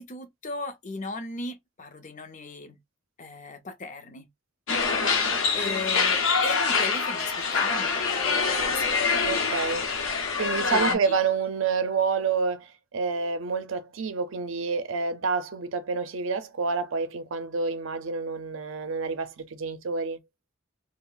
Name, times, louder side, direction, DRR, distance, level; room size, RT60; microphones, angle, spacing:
voice 1, 0.0-2.8 3.2-4.3 5.5-9.0 10.7-11.1, left 3 dB, 35° left, 0.6 m, -36 dB
sound 1, 4.7-10.9, left 5 dB, 70° left, 0.7 m, -25 dB
voice 2, 9.2-9.9 10.4-20.2, right 5 dB, 70° right, 0.5 m, -28 dB
2.5 x 2.1 x 3.8 m
head